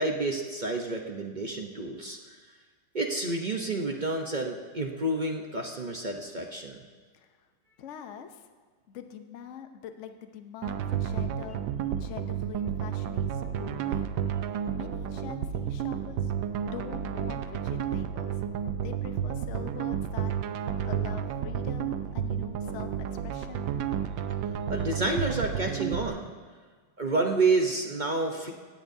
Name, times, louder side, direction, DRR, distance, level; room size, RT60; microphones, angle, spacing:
voice 1, 0.0-2.4 2.9-6.8 24.7-26.3 27.0-28.5, right 2 dB, 50° right, 2 dB, 0.5 m, -29 dB
voice 2, 7.1-7.5 7.8-8.5 8.9-11.6 12.0-14.1 14.7-18.4 18.8-20.3 20.8-23.7, left 9 dB, 50° left, 7 dB, 0.9 m, -44 dB
sound 1, 10.6-26.1, right 8 dB, 85° right, 1.4 m, -31 dB
17.5 x 15.5 x 2.7 m, 1.5 s
omnidirectional pair, 2.0 m